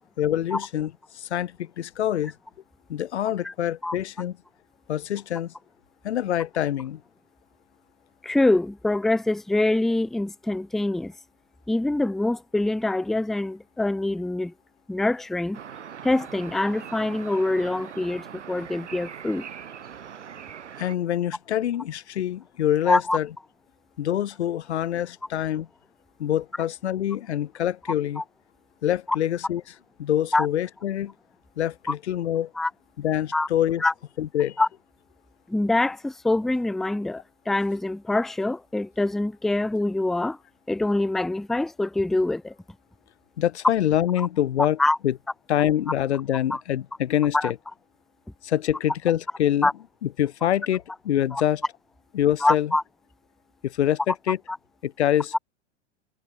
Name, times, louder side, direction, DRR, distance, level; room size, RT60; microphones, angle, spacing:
voice 1, 0.2-2.3 2.9-4.4 4.9-5.5 6.0-7.0 20.8-23.3 24.0-25.7 26.2-28.2 28.8-29.6 30.0-31.1 31.6-32.5 33.0-33.8 34.2-34.6 43.4-45.1 45.5-47.6 48.4-49.7 50.0-51.6 52.1-52.7 53.6-54.4 54.8-55.4, left 11 dB, 65° left, 1.8 m, -25 dB
voice 2, 8.2-11.1 11.7-14.5 14.9-15.6 16.0-19.4 22.9-23.2 28.2-28.3 30.3-30.5 31.9-32.0 32.6-32.7 33.3-33.5 33.8-33.9 34.6-34.7 35.5-40.4 40.7-42.5 44.8-45.0 46.5-46.6 47.3-47.5 49.6-49.7 51.3-51.4 52.4-52.8 54.5-54.6 55.3-55.4, left 2 dB, ahead, 0.5 m, -24 dB
sound 1, 15.5-21.0, right 8 dB, 70° right, 4.7 m, -41 dB
figure-of-eight pair, 90°, 36 cm